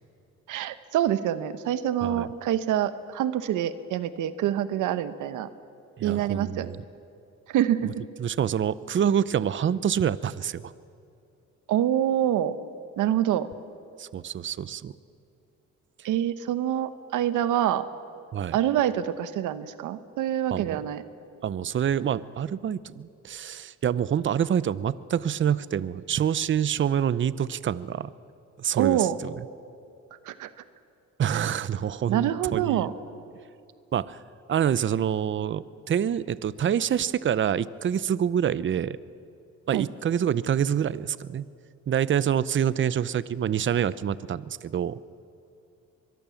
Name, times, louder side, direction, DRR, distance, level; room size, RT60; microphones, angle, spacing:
voice 1, 0.5-5.5 6.0-6.7 7.5-7.9 11.7-12.6 13.0-13.5 16.0-17.8 18.5-21.0 28.7-29.2 30.2-30.5 31.3-31.4 32.1-32.9 39.7-39.9, right 11 dB, 85° right, 13 dB, 1.0 m, -26 dB
voice 2, 2.0-2.3 6.0-6.8 7.8-7.9 8.2-10.7 14.0-14.9 16.0-16.1 18.3-18.6 20.5-20.8 21.4-28.1 28.6-29.3 31.2-32.9 33.9-34.2 34.5-39.0 39.7-41.5 41.9-45.0, right 9 dB, 40° right, 18 dB, 0.6 m, -26 dB
23.0 x 22.0 x 7.1 m, 2.6 s
cardioid pair, 90°, 30 cm